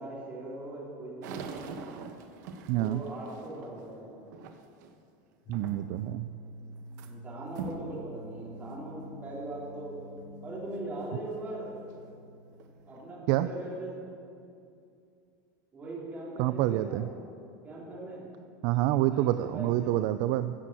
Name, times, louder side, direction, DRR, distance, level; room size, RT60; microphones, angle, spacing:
voice 1, 0.0-1.6 2.7-4.2 7.0-10.0 10.4-11.8 12.9-14.0 15.7-17.1 17.6-18.2 19.1-20.0, right 2 dB, 15° right, -6 dB, 3.6 m, -40 dB
sound 1, 1.2-5.0 5.5-6.1 6.4-7.1 7.5-7.9 8.5-8.6 9.3-9.4 11.9-12.0 12.5-13.1, right 5 dB, 75° right, 1.2 m, -43 dB
voice 2, 2.7-3.0 5.5-6.3 13.3-13.5 16.4-17.0 18.6-20.5, right 14 dB, 45° right, 12 dB, 0.4 m, -27 dB
sound 2, 5.5-14.2, equal, 30° left, 1.2 m, -48 dB
15.0 x 7.7 x 7.5 m, 2.5 s
supercardioid pair, 170°, 10 cm